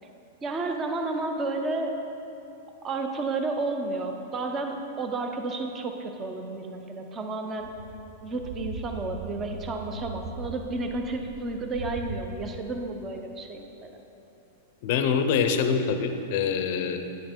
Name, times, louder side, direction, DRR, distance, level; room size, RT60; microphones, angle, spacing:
voice 1, 0.4-2.0 2.8-7.7 8.2-13.9, right 3 dB, 15° right, 4 dB, 0.5 m, -31 dB
sound 1, 7.6-12.2, right 3 dB, 85° right, 0.8 m, -39 dB
voice 2, 14.8-17.0, left 6 dB, 45° left, 7 dB, 0.5 m, -25 dB
9.3 x 5.3 x 4.4 m, 2.9 s
supercardioid pair, 175°, 0 cm